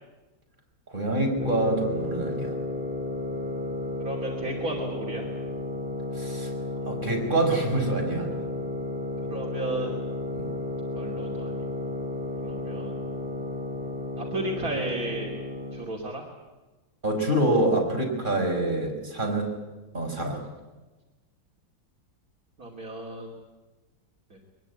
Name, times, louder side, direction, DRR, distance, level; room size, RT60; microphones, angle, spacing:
voice 1, 0.9-2.5 6.1-6.5 6.9-8.3 10.3-10.5 17.0-19.5 19.9-20.4, right 1 dB, 25° right, 0 dB, 5.6 m, -26 dB
sound 1, 1.4-15.9, left 1 dB, 5° right, 3.3 m, -33 dB
voice 2, 4.0-5.2 9.2-10.0 10.9-11.5 12.4-13.0 14.2-15.3 15.7-16.3 22.6-23.3 24.3-24.4, right 2 dB, 55° right, -2 dB, 3.3 m, -33 dB
23.0 x 21.0 x 9.6 m, 1.2 s
omnidirectional pair, 1.9 m